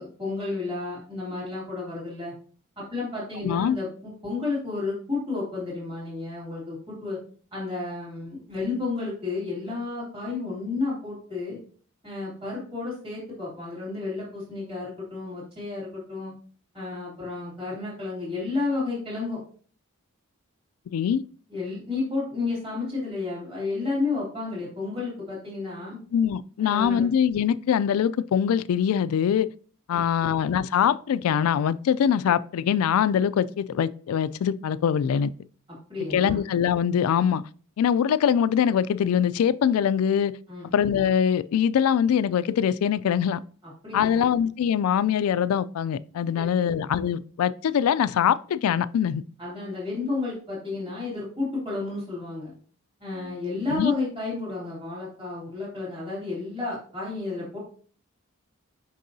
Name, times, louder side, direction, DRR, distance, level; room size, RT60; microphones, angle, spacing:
voice 1, 0.0-2.3 2.8-7.2 7.5-11.6 12.0-16.3 16.7-19.4 21.5-26.0 26.6-27.0 29.9-30.3 35.7-36.4 40.5-40.7 43.6-44.3 46.3-46.7 49.4-52.5 53.0-57.6, left 3 dB, 25° right, 3.0 m, -32 dB
voice 2, 3.4-3.8 20.9-21.2 26.1-29.5 29.9-35.3 36.1-37.4 37.8-40.3 40.7-43.4 43.9-49.2 53.7-53.9, left 8 dB, 85° left, 0.3 m, -23 dB
6.5 x 5.4 x 2.7 m
head